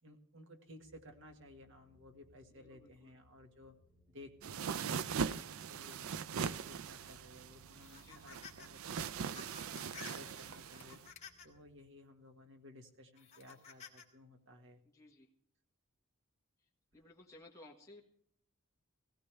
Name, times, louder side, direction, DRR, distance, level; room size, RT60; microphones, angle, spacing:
voice 1, 0.0-3.7 4.1-11.0 11.4-14.8, left 1 dB, 60° right, 4 dB, 1.7 m, -57 dB
sound 1, 0.8-11.8, left 1 dB, 10° right, 6.7 m, -70 dB
voice 2, 2.5-3.1 8.0-8.4 14.9-15.3 16.9-18.1, left 2 dB, 15° left, -3 dB, 1.6 m, -58 dB
sound 2, 4.4-11.1, right 6 dB, 75° right, 0.5 m, -40 dB
sound 3, 7.8-8.7 9.0-11.6 12.2-12.3 13.2-14.1, left 7 dB, 30° left, 2.0 m, -54 dB
17.5 x 17.0 x 3.4 m, 0.66 s
head